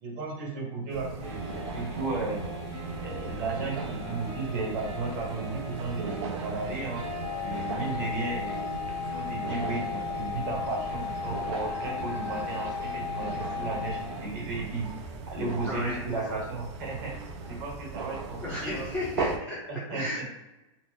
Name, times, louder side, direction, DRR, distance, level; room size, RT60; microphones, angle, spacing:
voice 1, 0.0-2.4 3.0-8.6 9.1-14.9 15.3-17.1 17.5-18.8 19.7-20.0, right 3 dB, 40° right, -4 dB, 1.1 m, -34 dB
sound 1, 0.9-19.4, right 4 dB, 55° right, 0.5 m, -38 dB
sound 2, 1.2-14.3, right 1 dB, 20° right, 1.0 m, -41 dB
sound 3, 7.2-14.0, left 8 dB, 75° left, 0.6 m, -36 dB
voice 2, 15.6-16.4 18.4-20.4, left 1 dB, 5° left, -10 dB, 0.6 m, -35 dB
2.8 x 2.0 x 3.6 m, 1.0 s
supercardioid pair, 175°, 17 cm